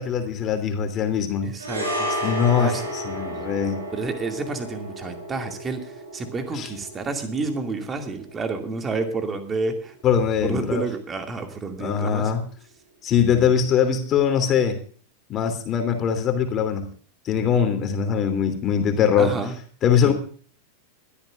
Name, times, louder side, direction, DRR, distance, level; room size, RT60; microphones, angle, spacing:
voice 1, 0.0-1.5 2.2-3.8 6.5-6.7 10.0-10.8 11.8-12.4 13.0-14.8 15.3-16.9 17.2-19.3 19.8-20.1, left 7 dB, 30° left, 6 dB, 3.1 m, -22 dB
voice 2, 1.4-2.3 2.6-2.9 3.9-9.9 10.4-12.3 19.2-19.5 20.1-20.2, right 3 dB, 20° right, 5 dB, 2.4 m, -30 dB
sound 1, 1.6-10.1 10.3-10.5, equal, 75° right, 7.1 m, -33 dB
22.5 x 13.0 x 2.5 m, 0.43 s
figure-of-eight pair, 90°, 0 cm